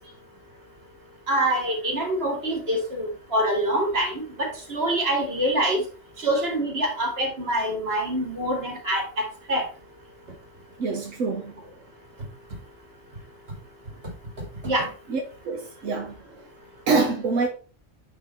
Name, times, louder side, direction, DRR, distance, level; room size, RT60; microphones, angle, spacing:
voice 1, 1.3-5.8 6.2-9.7 14.6-14.9, right 1 dB, 50° right, 2.4 m, -25 dB
voice 2, 10.8-11.5 15.1-16.1 16.9-17.5, right 4 dB, 80° right, 1.3 m, -25 dB
9.6 x 4.0 x 4.2 m
omnidirectional pair, 1.3 m